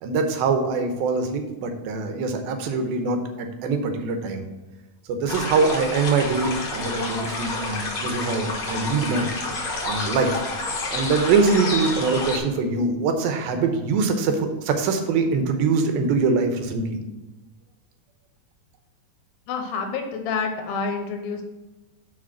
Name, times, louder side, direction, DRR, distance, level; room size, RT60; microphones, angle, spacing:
voice 1, 0.0-4.4 5.1-9.3 9.8-10.4 10.9-17.0, right 4 dB, 90° right, 6 dB, 2.7 m, -23 dB
sound 1, 5.3-12.4, left 3 dB, 65° left, 1.1 m, -29 dB
voice 2, 19.5-21.4, left 5 dB, 90° left, 4 dB, 2.9 m, -28 dB
6.3 x 5.0 x 6.0 m, 1.1 s
omnidirectional pair, 4.1 m